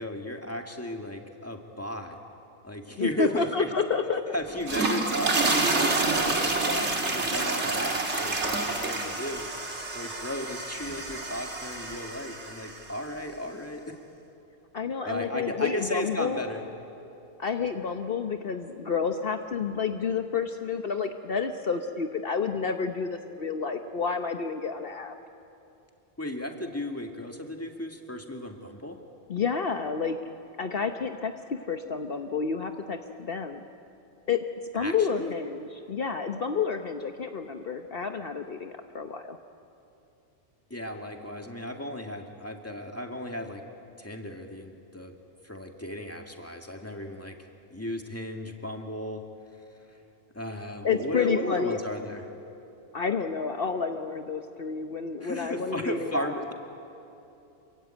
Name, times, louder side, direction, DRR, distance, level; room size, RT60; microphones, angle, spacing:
voice 1, 0.0-2.2 2.6-3.7 4.3-9.5 9.9-13.8 15.0-16.6 26.2-29.0 34.8-35.3 40.7-43.6 44.0-45.1 45.4-47.4 47.7-49.2 50.3-52.2 55.2-56.5, left 1 dB, 10° left, 3 dB, 2.2 m, -35 dB
voice 2, 2.9-4.2 14.7-16.4 17.4-25.1 29.3-30.2 30.6-33.6 34.3-34.4 34.7-39.4 50.8-51.8 52.9-56.3, left 5 dB, 55° left, 6 dB, 1.2 m, -30 dB
sound 1, 4.5-12.8, right 3 dB, 85° right, 2.7 m, -28 dB
28.0 x 23.0 x 9.1 m, 2.8 s
omnidirectional pair, 1.1 m